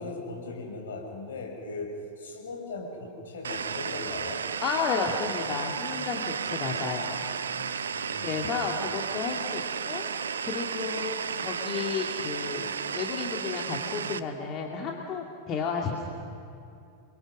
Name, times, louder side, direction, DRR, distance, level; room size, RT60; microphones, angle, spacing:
voice 1, 0.0-1.9 2.2-4.4 7.9-8.5, left 3 dB, 65° left, 0 dB, 6.3 m, -38 dB
sound 1, 3.4-14.2, right 6 dB, 70° right, 0.7 m, -33 dB
voice 2, 4.6-7.2 8.2-10.1 10.4-16.1, left 5 dB, 35° left, 0 dB, 2.4 m, -32 dB
29.5 x 23.5 x 6.4 m, 2.6 s
figure-of-eight pair, 90°, 0 cm